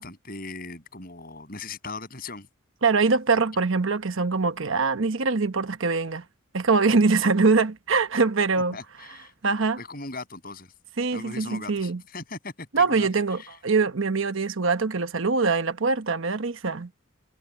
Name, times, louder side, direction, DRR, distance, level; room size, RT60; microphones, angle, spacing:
voice 1, 0.0-2.5 8.7-9.3 9.8-10.7 11.1-13.1 13.3-13.5, left 3 dB, 45° left, 7.4 m, -39 dB
voice 2, 2.8-6.2 6.5-8.8 9.4-9.8 11.0-12.0 12.7-16.9, right 4 dB, 70° right, 1.0 m, -23 dB
head